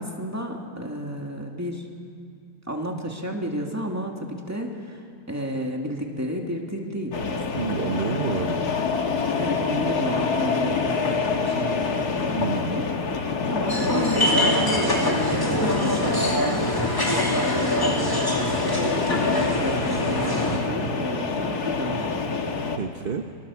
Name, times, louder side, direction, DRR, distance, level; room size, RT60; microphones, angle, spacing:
voice 1, 0.0-1.9 2.7-7.7 9.4-12.9 13.5-22.3, right 1 dB, 10° right, 1 dB, 2.5 m, -32 dB
sound 1, 7.1-22.8, left 5 dB, 75° left, 2.1 m, -27 dB
voice 2, 7.5-8.7 12.3-12.8 22.8-23.3, right 6 dB, 40° right, 5 dB, 1.1 m, -29 dB
sound 2, 13.7-20.6, left 1 dB, 15° left, 2.8 m, -24 dB
27.5 x 24.0 x 7.3 m, 2.4 s
omnidirectional pair, 1.7 m